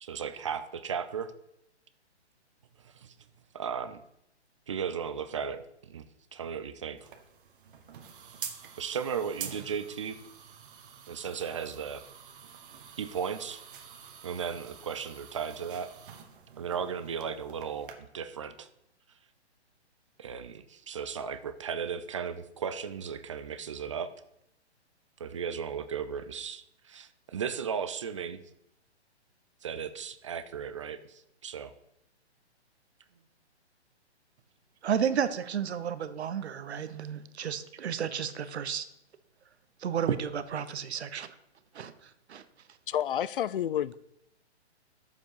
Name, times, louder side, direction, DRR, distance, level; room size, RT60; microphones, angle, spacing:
voice 1, 0.0-1.3 2.8-3.1 3.5-4.0 4.7-6.1 6.3-7.1 8.8-10.2 11.1-12.0 13.0-13.6 14.2-15.9 16.6-18.7 20.2-24.1 25.2-28.4 29.6-31.7, right 7 dB, 30° right, 0.4 m, -36 dB
sound 1, 7.0-17.9, right 7 dB, 50° right, 1.3 m, -47 dB
voice 2, 34.8-38.9 39.8-41.3 41.7-41.9 42.3-42.4, right 8 dB, 70° right, 1.0 m, -32 dB
voice 3, 42.9-43.9, left 10 dB, 50° left, 0.4 m, -29 dB
10.5 x 7.3 x 4.7 m
hypercardioid pair, 155°, 34 cm